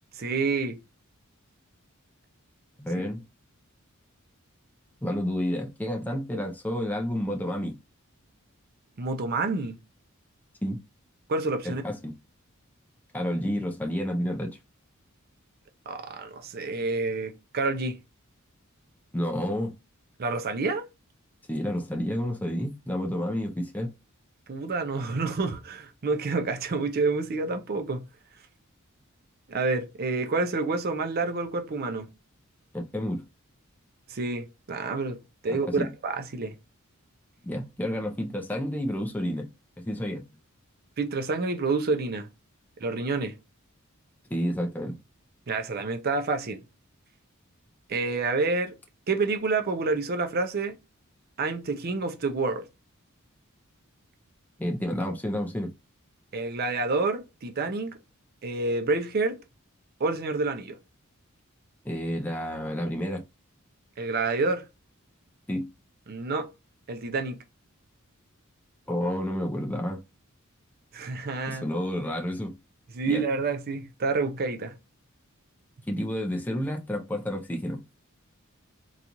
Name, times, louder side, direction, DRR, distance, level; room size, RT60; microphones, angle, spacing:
voice 1, 0.1-0.8 9.0-9.8 11.3-11.8 15.9-18.0 20.2-20.8 24.5-28.0 29.5-32.1 34.1-36.5 41.0-42.3 42.8-43.3 45.5-46.6 47.9-48.8 49.1-50.8 51.4-52.6 56.3-58.0 58.4-59.4 60.0-60.8 64.0-64.6 66.1-66.5 66.9-67.4 70.9-71.6 72.9-74.7, right 3 dB, 45° right, 0.5 m, -28 dB
voice 2, 2.8-3.2 5.0-7.8 10.6-10.8 11.8-12.1 13.1-14.6 19.1-19.7 21.5-23.9 32.7-33.2 35.5-35.9 37.4-39.5 39.8-40.3 44.3-45.0 54.6-55.7 61.8-63.2 65.5-65.7 68.9-70.0 71.5-72.6 73.1-73.2 75.9-77.8, equal, 10° left, 0.5 m, -30 dB
3.9 x 2.4 x 2.9 m
head